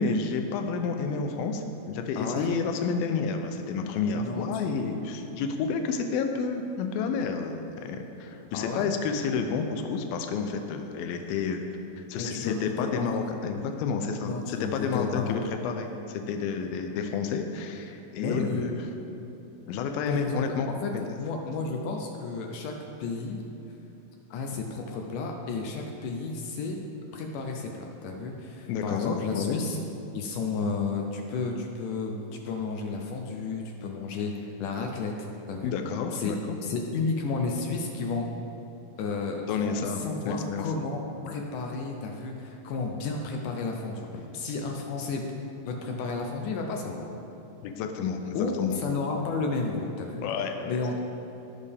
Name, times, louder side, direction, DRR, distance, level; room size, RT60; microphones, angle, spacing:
voice 1, 0.0-11.6 12.0-18.9 19.7-21.1 28.7-29.6 35.6-36.6 39.5-40.7 47.6-48.8 50.2-50.8, left 5 dB, 90° left, 5 dB, 2.5 m, -30 dB
voice 2, 2.2-2.5 4.1-4.5 8.5-8.9 12.1-13.2 14.2-15.4 18.2-18.7 20.1-20.4 20.8-20.9 21.2-22.7 23.0-23.4 24.3-26.8 27.1-29.8 30.1-35.7 36.1-36.3 36.6-38.3 39.0-44.1 44.3-45.2 45.6-47.1 48.3-50.2 50.7-51.0, left 4 dB, 75° left, 2 dB, 2.1 m, -32 dB
18.5 x 6.5 x 3.5 m, 3.0 s
omnidirectional pair, 4.2 m